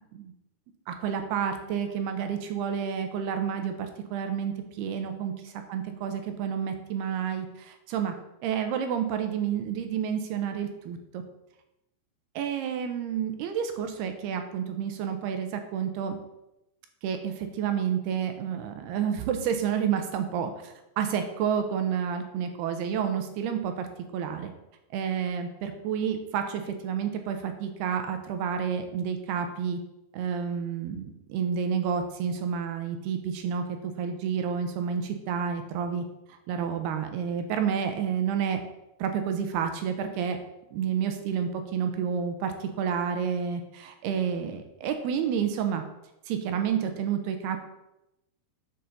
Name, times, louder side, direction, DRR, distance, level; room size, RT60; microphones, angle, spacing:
voice 1, 0.9-8.1 8.4-11.2 12.4-16.2 17.0-23.9 24.1-24.5 24.9-29.8 30.1-36.0 36.5-38.6 39.0-40.4 40.7-45.8 46.3-47.6, right 7 dB, 80° right, 6 dB, 2.7 m, -30 dB
7.8 x 5.5 x 6.7 m, 0.90 s
omnidirectional pair, 4.9 m